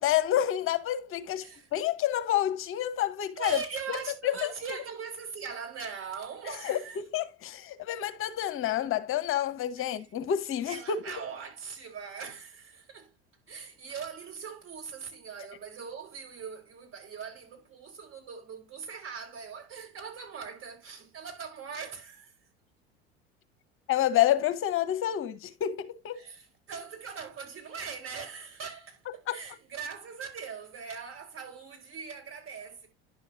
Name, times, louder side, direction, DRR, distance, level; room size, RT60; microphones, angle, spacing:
voice 1, 0.0-1.4 1.7-3.6 3.9-4.0 4.2-4.5 6.6-11.0 23.9-26.2 29.3-29.4, left 11 dB, 45° left, 0.9 m, -28 dB
voice 2, 1.3-1.7 3.4-7.0 9.8-10.0 10.7-13.1 13.5-22.3 26.2-32.9, right 6 dB, 45° right, 4.5 m, -41 dB
11.0 x 6.5 x 2.5 m
hypercardioid pair, 80°, 30 cm